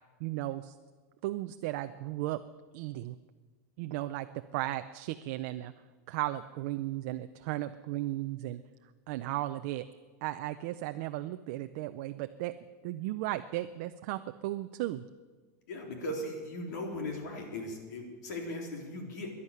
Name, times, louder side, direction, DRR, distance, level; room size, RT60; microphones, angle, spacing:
voice 1, 0.2-0.7 1.2-2.4 2.7-3.2 3.8-5.7 6.1-8.6 9.1-9.9 10.2-12.6 12.8-15.0, right 15 dB, 40° right, 9 dB, 0.5 m, -35 dB
voice 2, 15.7-19.3, left 1 dB, 70° left, 2 dB, 3.6 m, -38 dB
12.0 x 11.0 x 9.7 m, 1.4 s
supercardioid pair, 180°, 10 cm